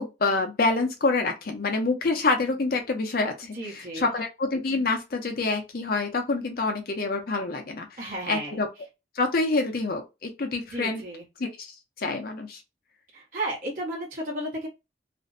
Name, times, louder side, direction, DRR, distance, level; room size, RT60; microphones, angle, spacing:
voice 1, 0.0-7.9 8.3-8.7 9.2-11.0 11.4-12.6, left 3 dB, 55° left, 0.5 m, -27 dB
voice 2, 3.5-4.1 8.0-8.6 10.7-11.2 13.1-14.7, right 1 dB, 55° right, 1.0 m, -33 dB
2.5 x 2.1 x 2.4 m
head